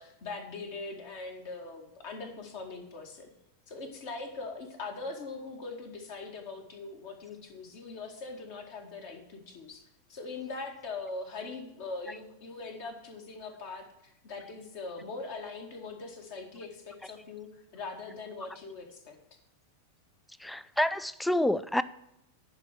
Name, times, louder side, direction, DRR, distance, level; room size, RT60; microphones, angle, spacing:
voice 1, 0.0-3.3 3.7-9.8 10.1-13.8 14.2-19.2, left 3 dB, 50° left, 2.2 m, -41 dB
voice 2, 20.4-21.8, left 1 dB, 5° left, 0.4 m, -28 dB
10.5 x 4.7 x 7.2 m
figure-of-eight pair, 90°, 0 cm